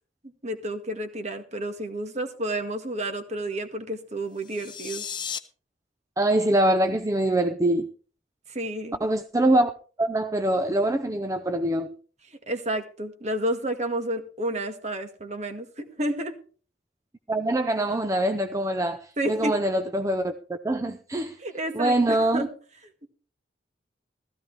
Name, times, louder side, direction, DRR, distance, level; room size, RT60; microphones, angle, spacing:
voice 1, 0.4-5.1 8.5-9.0 12.5-16.4 19.2-19.5 21.4-22.5, right 1 dB, 40° right, 1.8 m, -30 dB
sound 1, 4.3-5.4, left 7 dB, 25° left, 0.9 m, -35 dB
voice 2, 6.2-7.9 9.0-9.7 10.0-11.9 17.3-20.3 20.6-21.4 21.7-22.5, right 1 dB, 15° right, 0.6 m, -24 dB
15.5 x 14.0 x 3.4 m
head